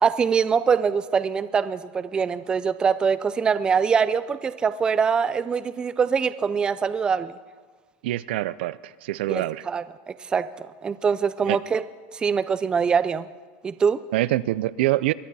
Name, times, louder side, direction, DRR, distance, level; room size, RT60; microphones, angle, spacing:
voice 1, 0.0-7.3 9.3-9.8 10.3-11.8 12.1-13.3 13.6-14.0, right 6 dB, 15° right, 14 dB, 0.4 m, -23 dB
voice 2, 8.0-9.6 11.4-11.6 14.1-15.1, right 16 dB, 80° right, 17 dB, 0.4 m, -25 dB
22.0 x 11.5 x 4.1 m, 1.4 s
supercardioid pair, 155°, 6 cm